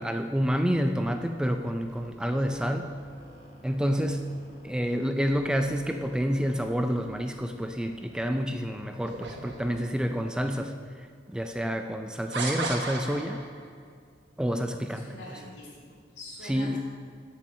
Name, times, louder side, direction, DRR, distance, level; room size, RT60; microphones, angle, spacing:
voice 1, 0.0-2.9 3.6-4.3 4.6-13.4 14.4-15.1 16.4-16.8, equal, 5° right, 6 dB, 0.3 m, -28 dB
sound 1, 0.8-4.9 5.2-10.6, left 1 dB, 45° left, 2.2 m, -52 dB
sound 2, 9.1-10.0 10.8-10.9 12.3-13.6, right 3 dB, 75° right, 1.3 m, -34 dB
voice 2, 14.9-16.8, equal, 75° left, -4 dB, 2.7 m, -44 dB
7.5 x 7.2 x 6.5 m, 2.1 s
head